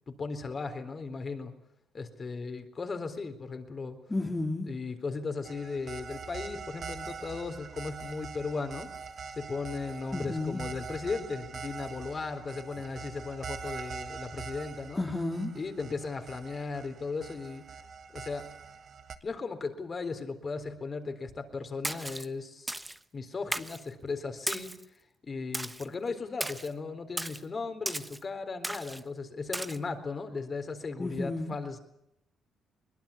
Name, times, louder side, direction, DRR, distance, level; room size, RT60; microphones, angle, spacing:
voice 1, 0.1-1.5 1.9-4.0 4.7-8.9 9.3-15.0 15.5-17.6 18.1-18.5 19.2-22.8 23.1-24.8 25.2-31.8, left 4 dB, 35° left, 8 dB, 3.8 m, -36 dB
voice 2, 4.1-4.7 10.1-10.6 15.0-15.6 31.0-31.5, left 2 dB, 15° left, 1 dB, 2.3 m, -32 dB
sound 1, 5.4-19.1, right 5 dB, 50° right, 1.8 m, -43 dB
Splash splatter, 21.8-22.3 22.7-23.0 23.5-23.8 24.5-24.8 25.5-25.9 26.4-26.7 27.2-27.4 27.9-28.2 28.6-29.0 29.5-29.8, right 1 dB, 10° right, 1.1 m, -35 dB
22.5 x 21.0 x 8.5 m, 0.82 s
cardioid pair, 90°, 0 cm